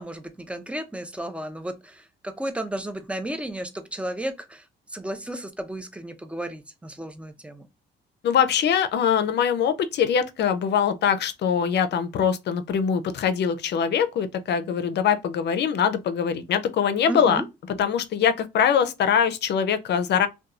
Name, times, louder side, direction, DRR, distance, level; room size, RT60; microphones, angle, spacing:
voice 1, 0.0-7.7 17.1-17.5, right 1 dB, 5° right, 0.5 m, -33 dB
voice 2, 8.2-17.4 17.8-20.3, left 7 dB, 60° left, 0.5 m, -23 dB
2.9 x 2.3 x 2.3 m
cardioid pair, 90°, 20 cm